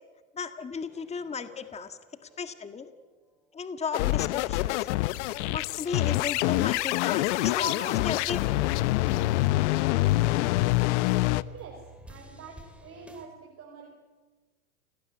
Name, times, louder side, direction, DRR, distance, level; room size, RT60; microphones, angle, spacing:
voice 1, 0.3-1.9 2.4-2.9 3.5-4.8 5.5-8.6, left 5 dB, 15° left, 9 dB, 1.7 m, -35 dB
sound 1, 0.8-3.7 3.9-13.3, right 2 dB, 5° right, 3.9 m, -50 dB
sound 2, 3.9-11.4, left 18 dB, 55° left, 0.9 m, -26 dB
voice 2, 11.4-13.9, right 5 dB, 30° right, 1 dB, 5.4 m, -46 dB
28.5 x 19.0 x 9.5 m, 1.3 s
hypercardioid pair, 110°, 42 cm